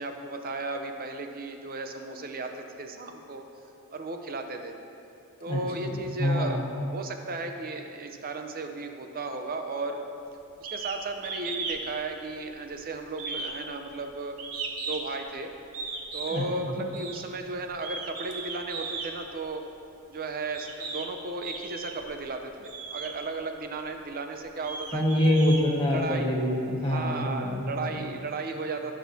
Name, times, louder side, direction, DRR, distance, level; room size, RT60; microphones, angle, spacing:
voice 1, 0.0-3.4 3.9-4.7 5.4-6.6 6.9-10.0 10.7-14.4 14.8-15.5 16.1-19.6 20.1-25.3 25.9-26.3 26.8-28.9, right 3 dB, 40° right, 5 dB, 0.6 m, -35 dB
voice 2, 5.5-6.6 16.3-16.8 24.9-27.9, left 1 dB, 25° left, -3 dB, 1.4 m, -26 dB
sound 1, 10.6-11.0 11.2-11.8 12.1-12.7 13.1-15.2 15.7-16.4 16.9-17.2 17.7-19.1 19.9-20.0 20.5-21.1 21.4-22.1 22.6-23.1 23.8-23.9 24.4-26.2, right 4 dB, 80° right, 1.0 m, -36 dB
15.5 x 6.3 x 2.7 m, 2.8 s
head